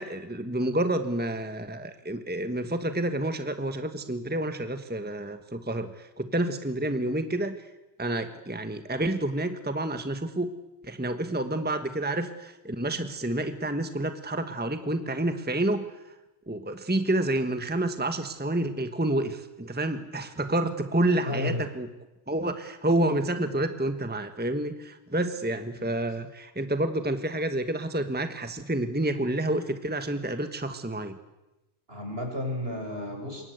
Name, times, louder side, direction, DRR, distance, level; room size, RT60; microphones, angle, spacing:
voice 1, 0.0-7.7 8.0-10.5 10.8-16.0 16.5-21.9 22.3-31.2, right 1 dB, 10° right, 9 dB, 1.4 m, -29 dB
voice 2, 21.2-21.6 25.8-25.9 31.9-33.4, left 1 dB, 65° right, 3 dB, 6.3 m, -32 dB
27.0 x 23.5 x 8.1 m, 1.0 s
omnidirectional pair, 1.1 m